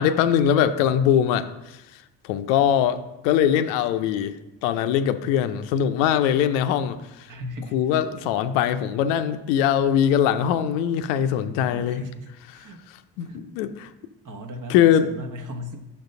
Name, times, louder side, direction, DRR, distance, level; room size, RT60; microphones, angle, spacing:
voice 1, 0.0-1.8 2.2-3.0 3.2-4.3 4.6-7.3 7.7-12.0 12.5-12.6 13.2-13.9 14.7-15.1, left 9 dB, 70° left, 10 dB, 0.6 m, -22 dB
voice 2, 7.3-8.3 11.1-11.3 11.7-12.8 13.2-13.5 14.2-15.8, left 1 dB, 40° right, 6 dB, 1.1 m, -37 dB
5.7 x 5.2 x 5.4 m, 0.97 s
figure-of-eight pair, 45°, 49 cm